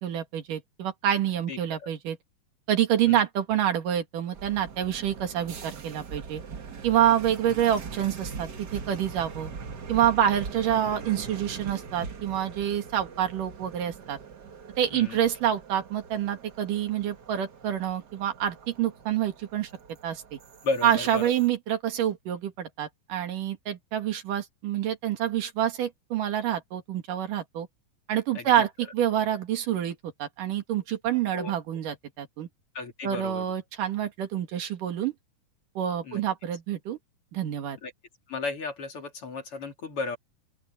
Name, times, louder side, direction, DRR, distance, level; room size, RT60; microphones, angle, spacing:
voice 1, 0.0-2.2 2.7-6.4 6.8-9.5 9.9-14.2 14.8-19.7 20.0-20.4 20.8-27.7 28.1-32.5 33.0-35.1 35.8-37.0 37.3-37.8, right 10 dB, 80° right, 3.5 m, -27 dB
voice 2, 1.5-1.9 3.1-3.2 14.9-15.2 20.6-21.3 28.3-28.5 31.3-31.5 32.7-33.5 36.0-36.2 37.8-37.9 38.3-40.2, left 3 dB, 45° left, 3.3 m, -34 dB
sound 1, 4.3-21.5, right 5 dB, 45° right, 1.5 m, -42 dB
open air
omnidirectional pair, 3.7 m